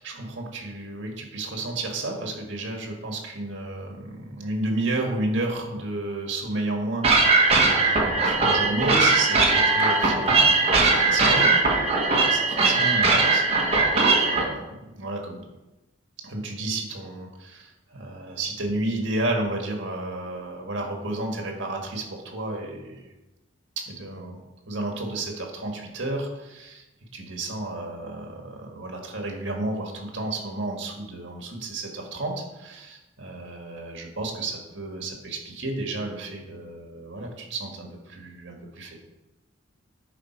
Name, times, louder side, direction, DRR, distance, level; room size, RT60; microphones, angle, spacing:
voice 1, 0.0-7.4 7.7-11.5 12.1-13.5 13.9-15.4 16.2-23.1 23.8-24.4 24.7-26.8 27.1-39.0, right 2 dB, 65° right, 1 dB, 1.9 m, -32 dB
sound 1, 7.0-14.4, right 3 dB, 30° right, 1.4 m, -20 dB
10.5 x 4.9 x 4.6 m, 1.0 s
head